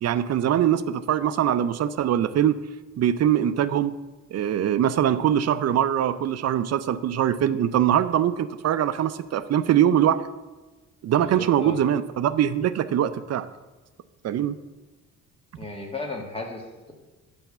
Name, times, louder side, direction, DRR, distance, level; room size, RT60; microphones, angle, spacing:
voice 1, 0.0-2.5 3.0-4.0 4.3-10.2 11.0-13.5 14.2-14.6, right 10 dB, 55° right, 13 dB, 0.6 m, -22 dB
voice 2, 11.2-11.8 15.6-16.9, left 2 dB, 20° left, 1 dB, 1.8 m, -35 dB
10.5 x 3.5 x 6.8 m, 1.2 s
cardioid pair, 90°, 30 cm